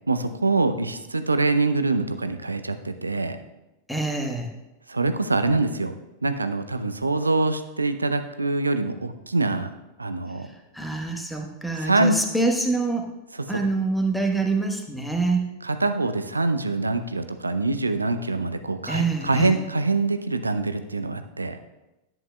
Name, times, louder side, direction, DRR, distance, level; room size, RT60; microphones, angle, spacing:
voice 1, 0.1-3.4 4.9-5.9 6.2-9.7 10.0-10.5 11.8-12.2 13.3-13.5 15.6-21.6, right 3 dB, 80° right, 9 dB, 0.5 m, -24 dB
voice 2, 3.9-4.5 10.7-13.1 13.5-15.4 18.9-19.6, right 3 dB, ahead, 2 dB, 1.1 m, -25 dB
11.0 x 9.0 x 2.2 m, 0.99 s
figure-of-eight pair, 90°, 0 cm